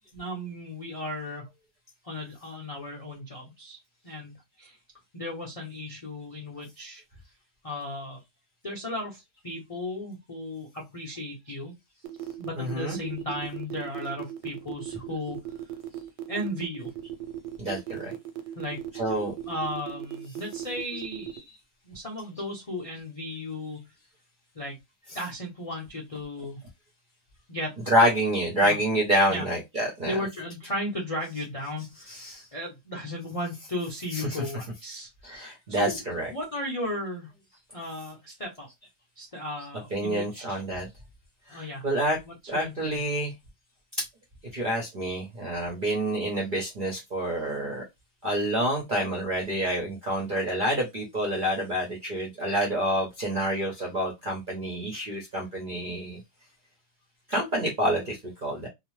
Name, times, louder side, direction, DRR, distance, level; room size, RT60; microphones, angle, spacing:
voice 1, 0.1-1.5 2.0-3.8 4.0-4.8 5.1-7.0 7.6-8.2 8.6-11.7 12.4-15.4 16.3-16.9 18.6-18.8 19.5-21.3 21.8-23.9 24.5-24.8 25.1-26.6 27.5-27.8 28.6-28.8 29.3-29.5 30.0-35.3 35.7-36.0 36.3-37.3 37.7-38.7 39.2-40.6 41.5-41.9 42.3-43.0, left 1 dB, 70° left, 0.3 m, -35 dB
sound 1, 12.0-21.4, right 13 dB, 85° right, 1.2 m, -37 dB
voice 2, 12.6-13.0 17.6-18.1 18.9-19.3 21.3-21.4 25.1-25.3 27.7-30.3 32.1-32.4 34.1-34.4 35.2-36.3 39.9-40.9 41.5-42.2 42.5-43.3 44.5-47.8 48.2-56.2 57.3-58.7, right 1 dB, 60° right, 0.5 m, -28 dB
2.7 x 2.0 x 3.0 m
omnidirectional pair, 1.8 m